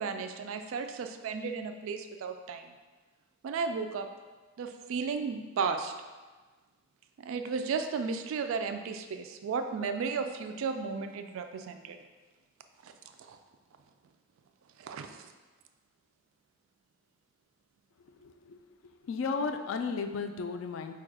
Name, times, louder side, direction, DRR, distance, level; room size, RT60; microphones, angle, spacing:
voice 1, 0.0-2.7 3.4-4.1 4.6-5.9 7.2-12.0 12.8-12.9 13.3-13.4 14.8-15.3, right 5 dB, 75° right, 7 dB, 0.3 m, -34 dB
voice 2, 18.2-18.6 19.0-20.9, left 4 dB, 70° left, 7 dB, 0.3 m, -34 dB
4.4 x 2.3 x 4.7 m, 1.3 s
head